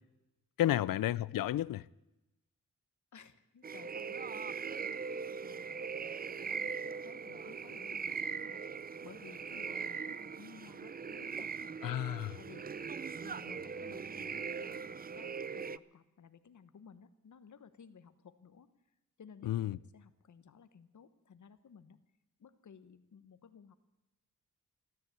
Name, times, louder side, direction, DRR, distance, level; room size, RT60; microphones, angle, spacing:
voice 1, 0.6-1.9 11.8-12.4 19.4-19.8, left 13 dB, 80° left, 0.5 m, -32 dB
voice 2, 3.1-8.6 9.0-11.8 12.4-18.7 19.2-22.0 22.4-23.8, left 6 dB, 60° left, 1.2 m, -57 dB
sound 1, 3.6-15.8, right 5 dB, 30° right, 0.4 m, -40 dB
13.5 x 13.0 x 8.2 m
cardioid pair, 70°, 33 cm